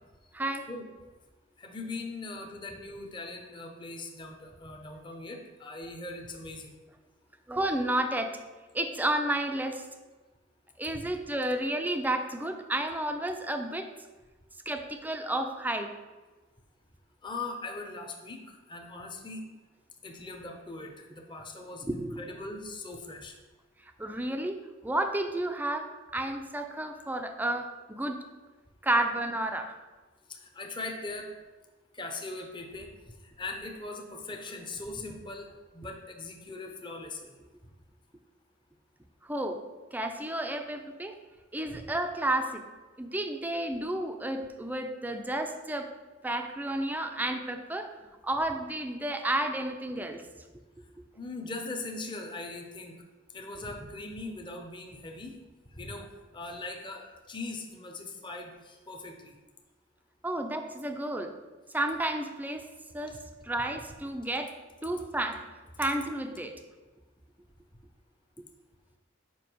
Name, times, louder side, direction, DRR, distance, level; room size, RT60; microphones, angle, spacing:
voice 1, 0.3-0.7 7.5-8.4 8.7-9.9 10.8-13.9 14.7-15.9 21.8-22.3 24.0-24.6 24.8-25.9 26.1-28.2 28.8-29.7 39.2-39.6 39.9-41.2 41.5-42.6 43.0-45.9 46.2-47.9 48.2-50.3 60.2-61.3 61.7-62.7 62.9-64.6 64.8-65.4 65.8-66.5, right 1 dB, 10° right, 6 dB, 0.5 m, -31 dB
voice 2, 1.6-6.7 10.9-11.1 17.2-19.4 20.0-23.4 30.3-31.3 31.9-32.9 33.4-37.4 41.7-41.9 51.2-52.9 53.3-55.3 55.7-56.1 56.3-59.3 60.3-60.4 63.1-63.2, left 2 dB, 25° left, 2 dB, 0.8 m, -40 dB
7.1 x 5.3 x 4.6 m, 1.2 s
head